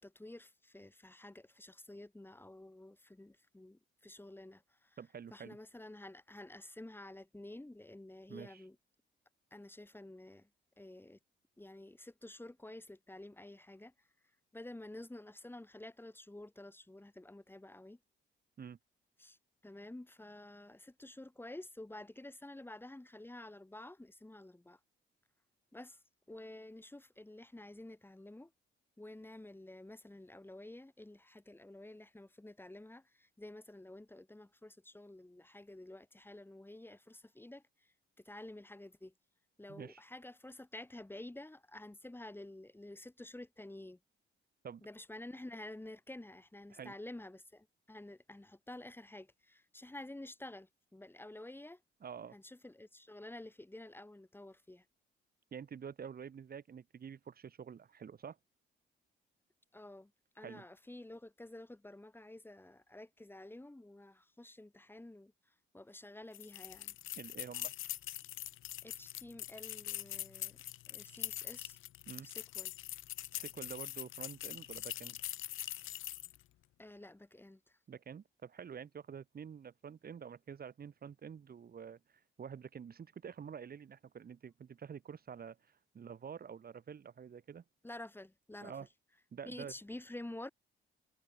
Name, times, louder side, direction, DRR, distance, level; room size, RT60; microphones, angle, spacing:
voice 1, 0.0-5.0 5.3-8.8 9.5-10.5 10.8-11.2 11.6-13.9 14.5-18.0 19.2-19.4 19.6-24.8 25.7-26.0 26.3-28.5 29.0-37.6 38.2-39.1 39.6-44.0 44.8-51.8 52.3-54.8 59.7-65.3 65.7-66.9 68.8-70.6 70.9-71.8 72.2-72.7 76.8-77.8 87.8-88.7 89.5-90.5, left 1 dB, 10° left, 5.5 m, -50 dB
voice 2, 5.0-5.6 8.3-8.6 18.6-18.8 39.7-40.0 44.6-44.9 46.7-46.9 52.0-52.4 55.5-58.4 60.4-60.7 67.2-67.7 72.1-72.3 73.3-75.2 77.9-82.0 82.4-87.6 88.6-88.9 89.3-89.7, right 7 dB, 50° right, 4.4 m, -48 dB
sound 1, 66.3-76.4, left 14 dB, 85° left, 2.9 m, -43 dB
cardioid pair, 90°, 20 cm